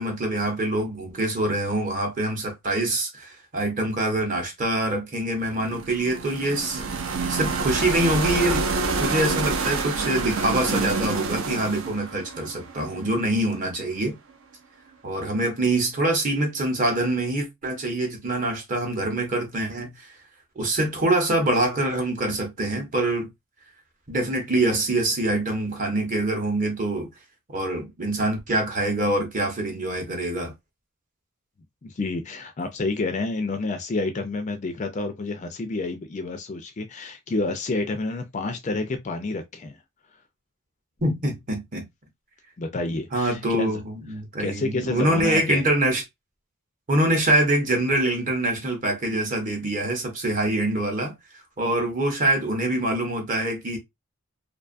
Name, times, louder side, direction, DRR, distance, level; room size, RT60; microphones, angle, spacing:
voice 1, 0.0-7.0 7.3-8.6 9.0-14.2 15.0-20.1 20.6-23.3 24.1-27.1 27.5-30.5 41.0-41.9 43.1-46.0 46.9-51.1 51.6-53.8, right 1 dB, 35° right, 0.8 m, -25 dB
sound 1, 5.5-13.5, right 4 dB, 65° right, 0.4 m, -28 dB
voice 2, 31.8-39.8 42.6-43.8 44.4-45.6, left 3 dB, 30° left, 0.3 m, -29 dB
2.5 x 2.3 x 2.4 m
head